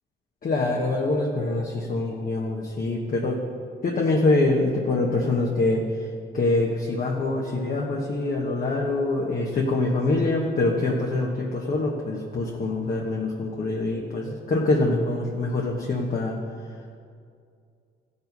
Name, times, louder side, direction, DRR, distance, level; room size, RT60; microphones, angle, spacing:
voice 1, 0.4-3.4 3.8-5.8 6.3-16.3, left 2 dB, 45° left, -2 dB, 1.4 m, -24 dB
15.0 x 5.6 x 5.4 m, 2.3 s
cardioid pair, 90°, 20 cm